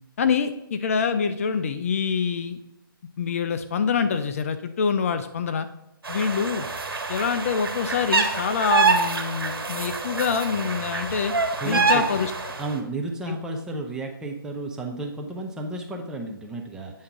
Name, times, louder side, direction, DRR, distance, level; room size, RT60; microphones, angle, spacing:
voice 1, 0.2-2.6 3.2-5.7 6.1-6.7 7.1-11.3 11.6-12.5 13.3-13.4, left 6 dB, 40° left, 9 dB, 0.5 m, -25 dB
sound 1, 6.1-12.7, right 4 dB, 75° right, 1.6 m, -26 dB
voice 2, 11.6-12.0 12.6-17.0, right 2 dB, 5° right, 1 dB, 0.6 m, -32 dB
8.5 x 3.6 x 5.9 m, 0.88 s
figure-of-eight pair, 150°, 12 cm